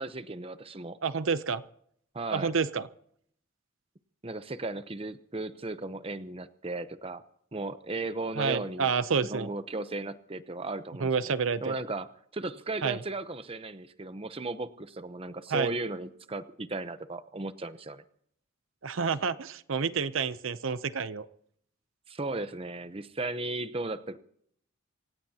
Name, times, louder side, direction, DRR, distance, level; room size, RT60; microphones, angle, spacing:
voice 1, 0.0-1.0 2.1-2.5 4.2-7.2 7.5-8.9 9.2-11.1 11.6-18.0 22.1-24.2, right 2 dB, 25° right, 12 dB, 0.8 m, -36 dB
voice 2, 1.0-1.6 2.3-2.9 8.4-9.5 11.0-11.8 12.8-13.0 15.5-15.7 18.8-21.3, right 5 dB, 65° right, 13 dB, 0.6 m, -29 dB
26.5 x 17.0 x 2.9 m, 0.66 s
head